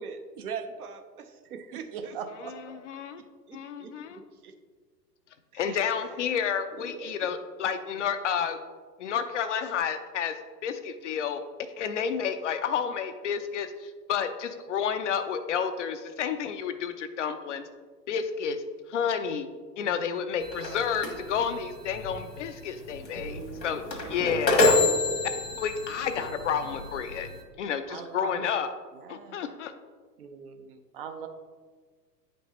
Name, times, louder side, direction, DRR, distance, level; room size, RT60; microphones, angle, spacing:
voice 1, 0.0-2.1 3.5-4.5 5.5-7.3 23.2-25.1 30.2-30.8, right 5 dB, 60° right, 7 dB, 0.8 m, -43 dB
voice 2, 1.7-2.9 23.1-23.5 23.7-23.8 24.1-24.4 27.9-28.4 28.9-29.4 30.9-31.3, right 7 dB, 35° right, 6 dB, 0.5 m, -41 dB
voice 3, 2.9-3.2 3.5-4.2 5.5-8.6 9.0-10.3 10.6-11.4 11.8-17.6 18.1-18.6 18.9-19.5 19.8-23.8 24.1-24.8 25.6-27.3 27.6-28.7 29.1-29.7, left 7 dB, 45° left, 9 dB, 0.5 m, -30 dB
sound 1, 20.4-27.4, left 2 dB, 75° left, 1.5 m, -28 dB
9.0 x 5.3 x 2.9 m, 1.5 s
figure-of-eight pair, 100°, 50 cm